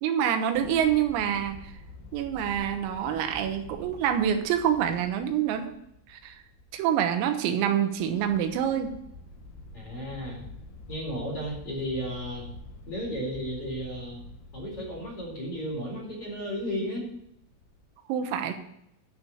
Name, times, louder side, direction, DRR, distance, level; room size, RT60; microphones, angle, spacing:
voice 1, 0.0-1.7 2.1-5.7 6.1-6.4 6.7-9.0 18.1-18.5, right 9 dB, 90° right, 7 dB, 3.8 m, -26 dB
sound 1, 0.5-17.9, left 2 dB, 65° left, 2.9 m, -48 dB
voice 2, 9.7-10.4 10.9-12.5 12.9-14.2 14.5-17.1, equal, 30° left, -2 dB, 4.5 m, -34 dB
11.0 x 6.4 x 8.5 m, 0.75 s
omnidirectional pair, 5.9 m